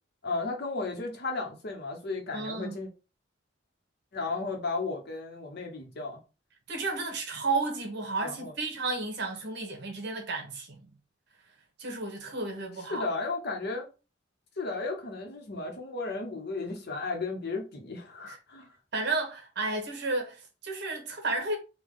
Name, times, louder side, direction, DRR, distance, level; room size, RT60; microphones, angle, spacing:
voice 1, 0.2-2.9 4.1-6.2 8.2-8.5 12.9-13.9 14.6-18.7, left 3 dB, 55° left, 0.9 m, -34 dB
voice 2, 2.3-2.8 6.7-10.9 11.8-13.1 18.2-18.4 18.9-21.6, right 3 dB, 60° right, 1.0 m, -32 dB
3.6 x 2.3 x 3.6 m
head